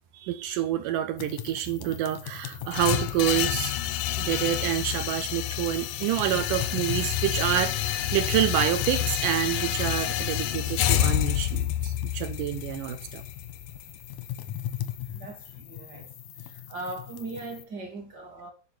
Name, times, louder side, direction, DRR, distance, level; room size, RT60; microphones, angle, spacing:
voice 1, 0.1-3.7 4.2-13.2, right 11 dB, 80° right, 2.0 m, -28 dB
sound 1, 1.2-17.6, left 11 dB, 70° left, 1.7 m, -39 dB
sound 2, 2.7-14.8, left 12 dB, 90° left, 1.8 m, -28 dB
sound 3, 6.3-11.7, right 3 dB, 60° right, 2.4 m, -48 dB
voice 2, 15.1-16.1 16.4-18.5, right 2 dB, 40° right, 1.6 m, -39 dB
10.5 x 5.6 x 6.3 m
omnidirectional pair, 4.7 m